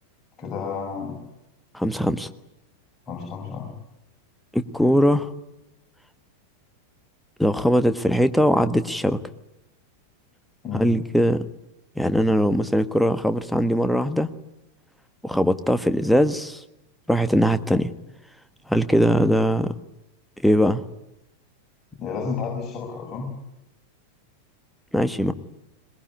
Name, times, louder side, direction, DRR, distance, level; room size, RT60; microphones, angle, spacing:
voice 1, 0.4-1.2 3.1-3.7 10.6-10.9 22.0-23.3, left 5 dB, 25° left, 0 dB, 7.4 m, -31 dB
voice 2, 1.7-2.3 4.5-5.3 7.4-9.2 10.7-11.4 11.9-14.3 15.2-16.6 17.1-17.9 18.7-19.7 20.4-20.8 24.9-25.3, equal, ahead, 10 dB, 1.5 m, -20 dB
22.0 x 22.0 x 9.7 m, 0.89 s
figure-of-eight pair, 90°, 0 cm